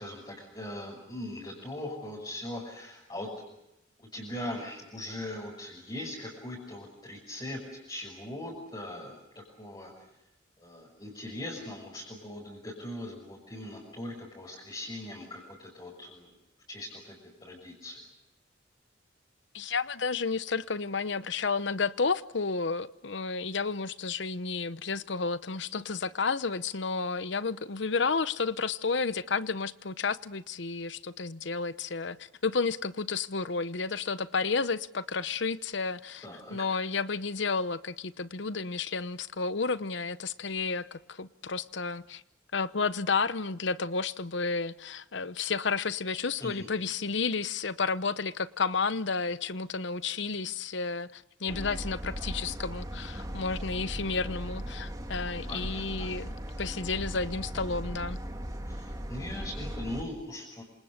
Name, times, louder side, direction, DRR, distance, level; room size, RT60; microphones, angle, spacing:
voice 1, 0.0-3.3 4.0-7.6 7.9-9.2 9.6-9.9 10.6-16.3 16.7-17.1 17.4-18.0 36.2-36.6 46.4-46.7 55.5-56.1 58.7-60.6, left 1 dB, 20° left, 6.5 m, -40 dB
voice 2, 19.5-42.2 42.5-56.3 56.6-58.2, left 4 dB, 65° left, 0.9 m, -31 dB
sound 1, 51.5-60.0, equal, 20° right, 2.1 m, -38 dB
27.5 x 27.0 x 6.7 m
head